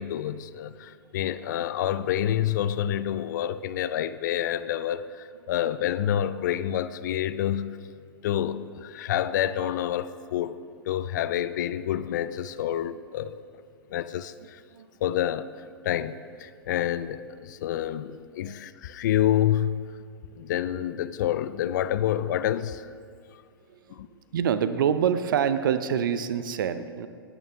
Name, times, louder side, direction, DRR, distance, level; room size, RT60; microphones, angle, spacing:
voice 1, 0.0-7.8 8.2-10.6 10.9-13.3 13.9-14.6 15.0-19.9 20.4-22.9 23.9-24.1, left 11 dB, 50° left, 14 dB, 0.5 m, -28 dB
voice 2, 23.7-24.0 24.3-27.1, right 8 dB, 55° right, 12 dB, 0.7 m, -26 dB
18.5 x 9.0 x 3.5 m, 2.3 s
figure-of-eight pair, 105°, 13 cm